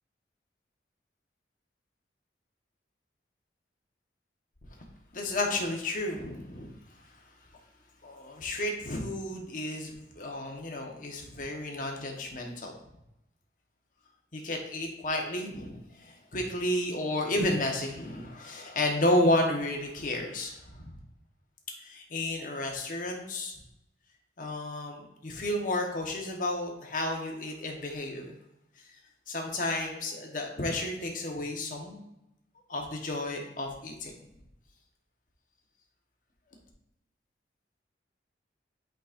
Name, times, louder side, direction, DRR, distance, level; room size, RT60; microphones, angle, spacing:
voice 1, 5.1-6.8 8.0-12.7 14.3-20.9 21.8-23.5 24.4-28.3 29.3-32.0 32.7-34.2, left 1 dB, 45° left, 1 dB, 1.2 m, -32 dB
8.4 x 5.2 x 2.6 m, 0.86 s
head